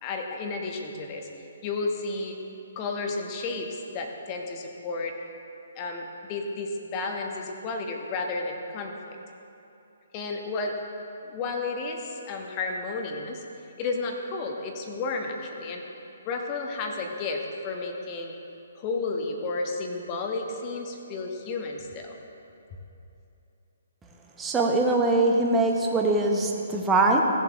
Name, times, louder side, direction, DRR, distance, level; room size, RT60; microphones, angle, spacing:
voice 1, 0.0-2.4 2.7-5.2 5.7-9.2 10.1-10.8 11.2-13.4 13.8-15.9 16.2-18.3 18.7-22.2, left 3 dB, 30° left, 2 dB, 1.2 m, -32 dB
voice 2, 24.4-27.2, right 2 dB, 10° right, 0 dB, 1.1 m, -22 dB
17.5 x 7.2 x 3.5 m, 2.8 s
figure-of-eight pair, 130°, 0 cm